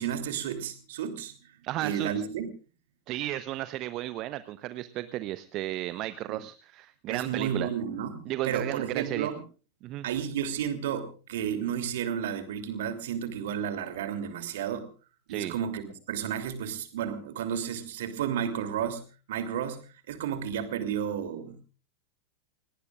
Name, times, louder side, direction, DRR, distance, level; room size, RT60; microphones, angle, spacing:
voice 1, 0.0-1.3 1.8-2.5 6.3-6.4 7.1-9.4 9.8-14.9 15.3-15.8 16.1-19.0 19.3-19.8 20.1-21.6, right 8 dB, 55° right, 8 dB, 3.0 m, -32 dB
voice 2, 1.6-2.1 3.1-7.7 8.3-9.3 9.8-10.1 15.3-15.6, right 15 dB, 35° right, 13 dB, 0.9 m, -34 dB
29.0 x 18.5 x 2.5 m, 0.36 s
figure-of-eight pair, 90°, 0 cm